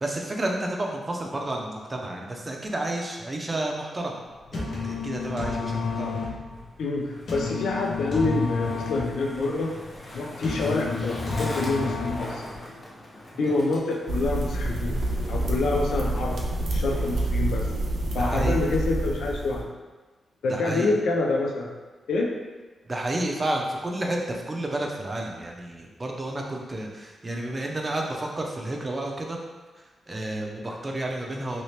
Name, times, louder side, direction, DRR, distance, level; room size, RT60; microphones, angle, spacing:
voice 1, 0.0-4.2 4.5-6.2 13.3-13.5 18.2-18.6 20.5-20.9 22.9-29.4 30.1-31.6, right 1 dB, 25° right, 0 dB, 0.5 m, -31 dB
sound 1, 4.3-12.5, left 4 dB, 65° left, 0.8 m, -31 dB
Skateboard, 6.5-19.2, left 1 dB, 40° left, 0.8 m, -43 dB
voice 2, 6.8-9.7 10.1-12.8 13.4-15.0 15.3-16.4 16.7-17.6 18.1-19.7 20.4-21.7 22.1-22.3, left 3 dB, 85° left, 0 dB, 0.4 m, -27 dB
sound 2, 14.1-19.6, right 1 dB, 75° right, 0.5 m, -27 dB
3.0 x 2.8 x 3.2 m, 1.3 s
cardioid pair, 105°, 0 cm